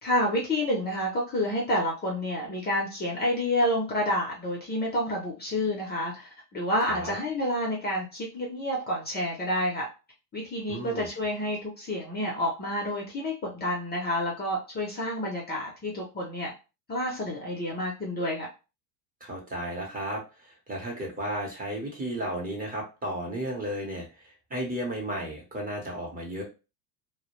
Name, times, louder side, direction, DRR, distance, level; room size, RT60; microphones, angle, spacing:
voice 1, 0.0-9.9 10.3-16.5 16.9-18.5, left 1 dB, 20° left, -1 dB, 0.6 m, -29 dB
voice 2, 6.8-7.1 10.7-11.1 19.2-26.4, right 1 dB, 20° right, -1 dB, 0.8 m, -34 dB
2.2 x 2.1 x 3.0 m, 0.30 s
supercardioid pair, 120°, 48 cm